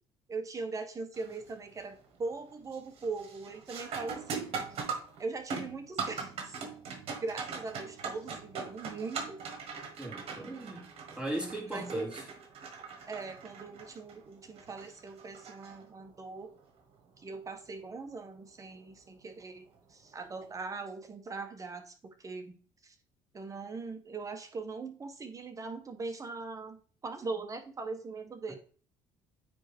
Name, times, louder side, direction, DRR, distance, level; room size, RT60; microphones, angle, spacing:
voice 1, 0.3-4.6 5.2-6.6 7.2-9.4 10.3-10.8 11.7-12.1 13.1-16.5 17.2-21.9 22.2-22.6 22.8-22.9 23.3-28.6, right 3 dB, 30° right, 1.1 m, -40 dB
sound 1, 1.1-1.5 1.9-2.4 2.7-16.2 18.7-18.8 19.7-19.9, right 5 dB, 65° right, 1.6 m, -41 dB
voice 2, 10.0-10.9 11.1-12.2, right 1 dB, 10° right, 2.8 m, -37 dB
9.1 x 3.5 x 3.6 m
cardioid pair, 95°, 11 cm